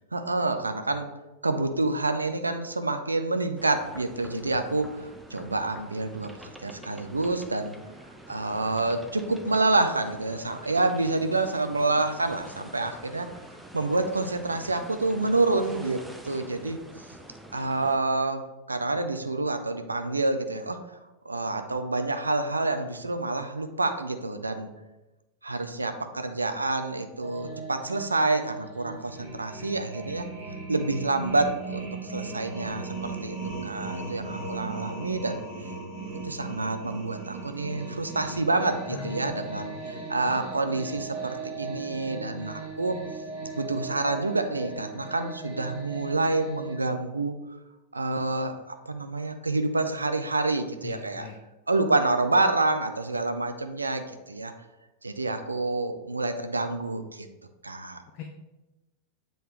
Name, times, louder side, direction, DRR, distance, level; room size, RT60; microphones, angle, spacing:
voice 1, 0.1-1.1 1.4-6.3 6.6-7.7 8.3-13.3 13.7-16.8 17.5-18.4 18.7-20.8 21.3-24.7 25.4-30.3 30.7-33.4 33.6-35.4 36.2-43.0 43.6-47.4 47.9-51.3 51.7-54.5 55.0-57.3 57.6-58.0, right 2 dB, 80° right, 8 dB, 0.5 m, -28 dB
sound 1, 3.6-18.0, right 1 dB, 5° right, 0.6 m, -46 dB
sound 2, 27.2-46.7, right 4 dB, 30° right, 1.8 m, -38 dB
voice 2, 38.9-39.3 39.7-40.0 50.8-51.4 58.1-58.2, left 10 dB, 40° left, 3 dB, 0.5 m, -40 dB
7.6 x 3.9 x 3.2 m, 1.0 s
figure-of-eight pair, 90°, 0 cm